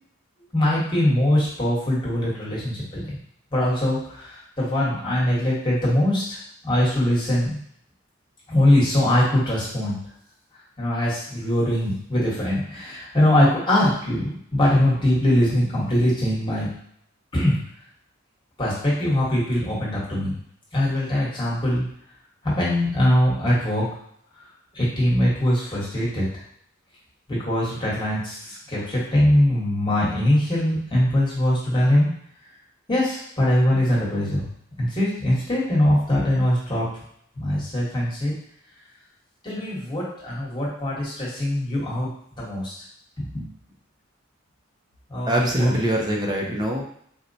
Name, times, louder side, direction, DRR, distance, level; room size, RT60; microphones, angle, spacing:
voice 1, 0.5-3.2 3.5-6.4 6.6-7.6 8.5-10.0 10.8-16.7 17.3-17.6 18.6-20.4 20.7-21.9 22.4-23.9 24.7-26.3 27.3-32.1 32.9-34.5 34.8-36.9 37.3-38.3 39.4-42.1 42.4-42.7 43.2-43.5 45.1-45.8, left 1 dB, 25° left, -7 dB, 1.2 m, -22 dB
voice 2, 45.3-46.8, right 1 dB, 20° right, -1 dB, 0.5 m, -23 dB
4.2 x 2.1 x 2.6 m, 0.68 s
head